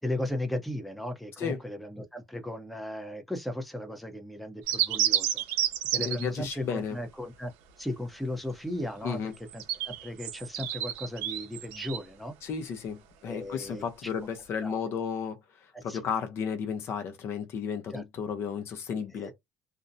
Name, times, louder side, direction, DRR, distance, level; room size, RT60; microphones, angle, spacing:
voice 1, 0.0-5.4 5.9-7.5 7.8-12.4 13.2-14.3 14.6-14.8 15.7-16.0 17.9-18.0 19.1-19.3, left 1 dB, ahead, 0.7 m, -36 dB
sound 1, 4.7-6.3 9.4-12.0, right 11 dB, 85° right, 0.6 m, -30 dB
voice 2, 6.0-7.0 9.0-9.3 12.4-19.3, left 6 dB, 55° left, 0.7 m, -33 dB
2.5 x 2.1 x 2.6 m
supercardioid pair, 105°, 5 cm